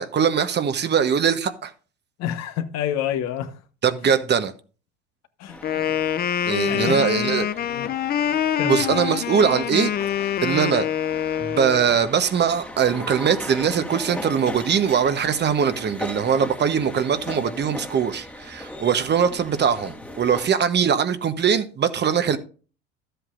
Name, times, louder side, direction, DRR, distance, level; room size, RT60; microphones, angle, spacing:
voice 1, 0.0-1.7 3.8-4.5 6.5-7.5 8.6-9.9 10.2-10.9 11.4-22.4, right 7 dB, 35° right, 1.1 m, -21 dB
voice 2, 2.2-3.5 4.0-4.1 5.4-6.1 6.7-7.1 7.7-7.9 8.6-9.0, left 10 dB, 55° left, 1.2 m, -29 dB
sound 1, 5.5-20.5, left 1 dB, 5° left, 1.6 m, -38 dB
Wind instrument woodwind instrument, 5.6-11.9, left 9 dB, 30° left, 0.6 m, -25 dB
12.5 x 8.0 x 2.6 m
hypercardioid pair, 75°, 31 cm